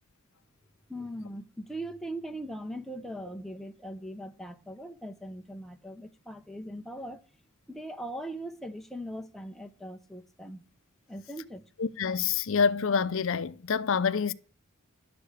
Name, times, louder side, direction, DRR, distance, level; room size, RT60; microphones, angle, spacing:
voice 1, 0.9-7.2 7.7-10.6 11.1-11.6, right 1 dB, ahead, 0.8 m, -40 dB
voice 2, 11.8-14.3, left 6 dB, 65° left, 0.6 m, -27 dB
11.5 x 6.9 x 8.2 m
head